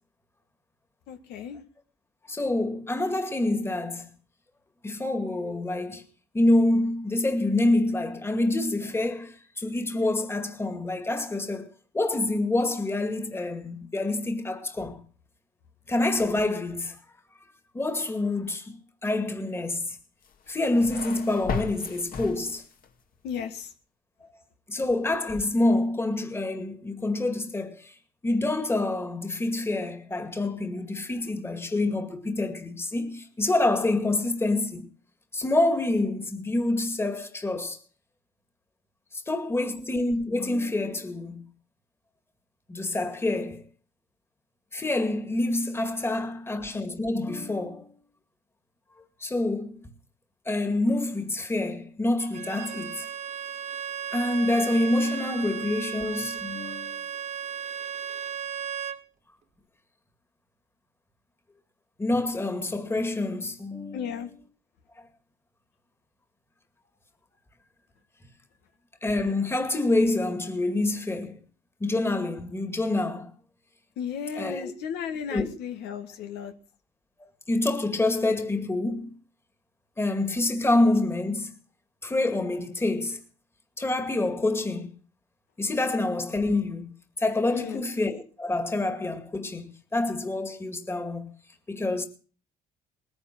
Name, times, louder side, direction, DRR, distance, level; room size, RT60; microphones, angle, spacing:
voice 1, 1.1-1.6 23.2-23.7 63.9-64.3 74.0-76.5 87.5-87.8, left 7 dB, 80° left, 1.8 m, -34 dB
voice 2, 2.3-4.1 4.8-6.0 6.3-15.0 15.9-17.0 17.7-18.7 19.0-20.0 20.5-22.6 24.7-27.9 28.2-34.9 35.3-37.8 39.1-41.4 42.7-43.6 44.7-47.9 49.2-49.8 50.5-53.1 54.1-57.1 62.0-64.3 69.0-71.4 71.8-73.3 74.4-74.7 75.3-75.5 77.5-79.1 80.0-81.5 82.0-83.2 83.8-84.9 85.6-91.3 91.7-92.1, left 2 dB, 15° left, 2.2 m, -27 dB
sound 1, 20.2-22.9, left 5 dB, 55° left, 2.2 m, -36 dB
Bowed string instrument, 52.2-59.0, right 9 dB, 45° right, 1.8 m, -35 dB
19.5 x 9.8 x 6.1 m
cardioid pair, 110°, 17 cm